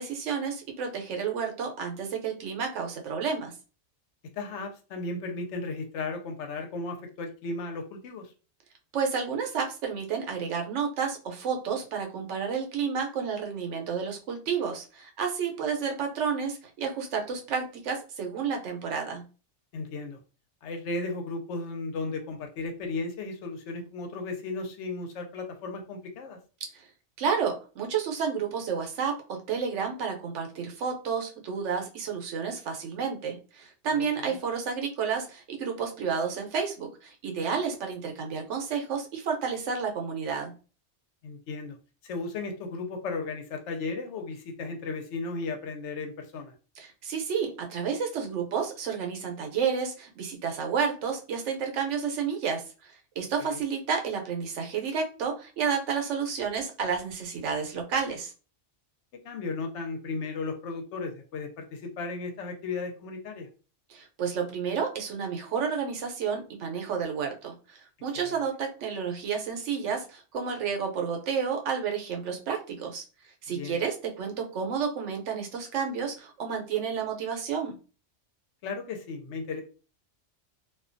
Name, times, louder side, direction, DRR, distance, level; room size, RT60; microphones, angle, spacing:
voice 1, 0.0-3.5 8.9-19.2 26.7-26.9 27.2-40.5 46.8-58.3 63.9-73.0 73.4-77.8, right 6 dB, 80° right, 3 dB, 1.0 m, -31 dB
voice 2, 4.4-8.3 19.7-20.2 20.6-26.4 33.9-34.4 41.2-41.8 42.0-46.5 53.4-53.6 59.2-63.5 68.1-68.4 73.5-73.8 78.6-79.6, left 3 dB, 75° left, 5 dB, 0.9 m, -35 dB
2.3 x 2.2 x 2.5 m, 0.34 s
omnidirectional pair, 1.2 m